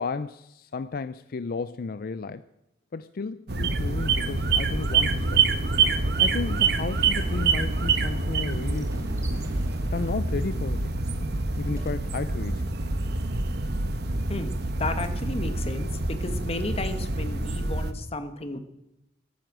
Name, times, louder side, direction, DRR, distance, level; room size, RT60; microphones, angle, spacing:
voice 1, 0.0-2.4 2.9-5.4 6.2-9.0 9.9-11.0 11.6-12.7, left 4 dB, 50° left, 13 dB, 0.4 m, -33 dB
sound 1, 3.5-17.9, right 4 dB, 60° right, 1.1 m, -26 dB
Motorcycle, 4.0-12.4, equal, 15° right, 1.9 m, -48 dB
voice 2, 14.8-15.9 16.2-18.6, left 2 dB, 30° left, 8 dB, 1.3 m, -33 dB
14.0 x 12.5 x 6.1 m, 0.88 s
head